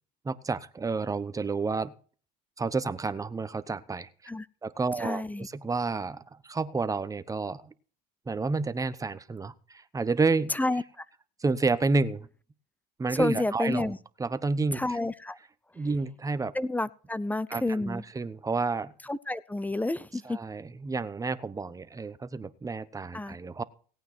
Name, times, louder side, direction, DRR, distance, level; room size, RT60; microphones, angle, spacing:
voice 1, 0.2-1.9 2.6-4.1 4.6-7.7 8.3-10.5 11.4-12.3 13.0-13.9 14.2-15.0 15.7-16.5 17.5-18.9 20.2-23.6, right 4 dB, 15° right, 14 dB, 1.0 m, -30 dB
voice 2, 5.0-5.5 10.5-11.0 13.1-14.0 14.7-15.4 16.5-18.0 19.1-20.4 23.1-23.4, left 2 dB, 10° left, 19 dB, 0.6 m, -30 dB
17.5 x 9.1 x 4.4 m, 0.42 s
supercardioid pair, 100°, 21 cm